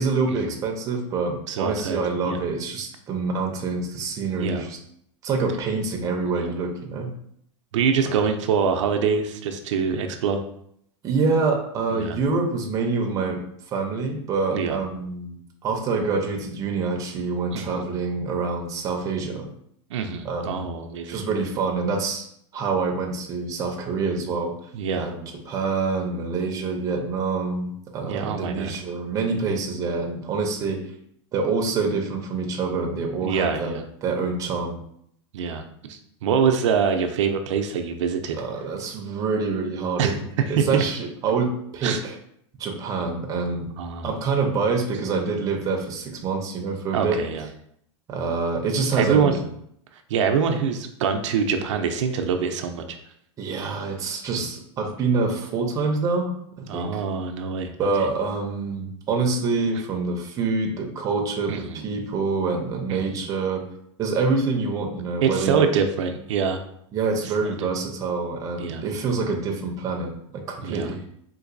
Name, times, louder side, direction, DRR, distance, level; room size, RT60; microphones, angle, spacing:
voice 1, 0.0-4.8 5.2-7.1 8.0-8.2 11.0-13.4 13.7-15.4 15.6-19.5 20.2-20.7 21.1-22.3 22.5-24.5 25.0-25.1 25.5-30.8 31.3-34.8 38.3-40.2 40.5-42.1 42.6-43.7 44.0-47.2 48.1-49.4 53.4-56.3 56.7-57.0 57.8-63.6 64.0-65.6 66.9-71.0, right 4 dB, 20° right, 1 dB, 0.5 m, -26 dB
voice 2, 1.5-2.0 2.3-2.4 4.3-4.6 6.3-6.6 7.7-10.4 11.9-12.2 14.5-14.8 17.5-17.8 19.9-21.2 24.7-25.1 28.0-28.7 33.2-33.8 35.3-38.4 40.0-40.8 41.8-42.0 43.8-44.1 46.9-47.5 49.0-49.4 50.1-52.8 54.3-54.5 56.7-57.7 61.5-61.8 62.9-63.2 65.2-66.6 67.6-67.7 68.6-68.8 70.6-70.9, right 6 dB, 80° right, 5 dB, 0.4 m, -25 dB
3.8 x 2.6 x 2.5 m, 0.70 s
supercardioid pair, 145°, 15 cm